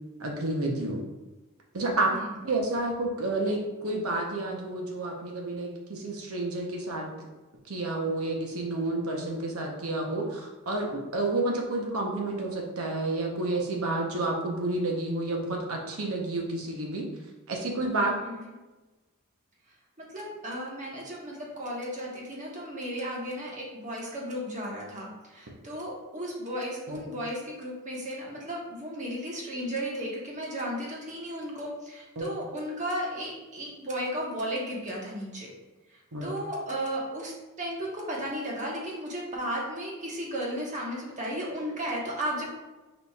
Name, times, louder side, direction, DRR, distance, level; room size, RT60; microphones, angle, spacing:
voice 1, 0.2-1.0 1.7-2.1 2.4-7.1 7.7-17.0 17.5-18.1 26.9-27.0 32.2-32.3 36.1-36.3, right 2 dB, 70° right, 0 dB, 0.9 m, -30 dB
voice 2, 18.2-18.5 20.1-35.5 35.9-42.4, equal, 35° right, -3 dB, 1.1 m, -34 dB
5.0 x 4.2 x 2.4 m, 1.1 s
head